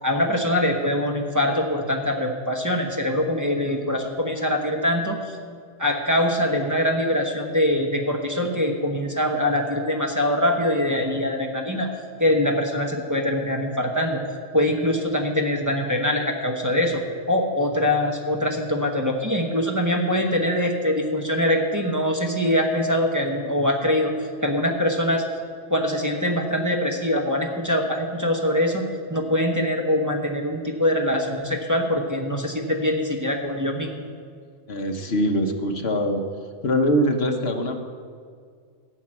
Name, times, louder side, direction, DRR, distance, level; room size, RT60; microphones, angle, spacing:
voice 1, 0.0-5.4 5.8-11.9 12.2-14.2 14.5-17.0 17.3-24.1 24.4-25.2 25.7-34.0, left 1 dB, 15° right, 0 dB, 1.0 m, -23 dB
voice 2, 34.7-36.2 36.6-37.8, equal, 55° left, 3 dB, 1.3 m, -23 dB
13.0 x 6.0 x 8.9 m, 2.1 s
omnidirectional pair, 1.3 m